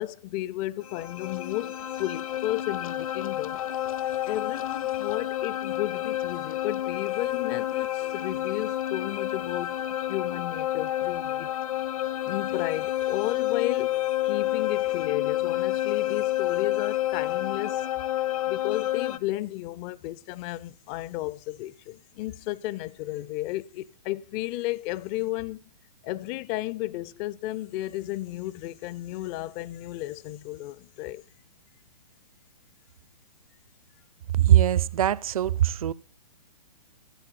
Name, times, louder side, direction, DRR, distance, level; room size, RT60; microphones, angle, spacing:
voice 1, 0.0-3.6 4.2-11.5 12.3-17.9 18.5-25.6 26.0-31.2, left 17 dB, 25° left, 0.5 m, -33 dB
sound 1, 0.8-19.2, left 13 dB, 55° left, 0.9 m, -29 dB
voice 2, 34.4-35.9, right 12 dB, 55° right, 0.6 m, -21 dB
14.0 x 7.8 x 7.5 m
figure-of-eight pair, 120°, 21 cm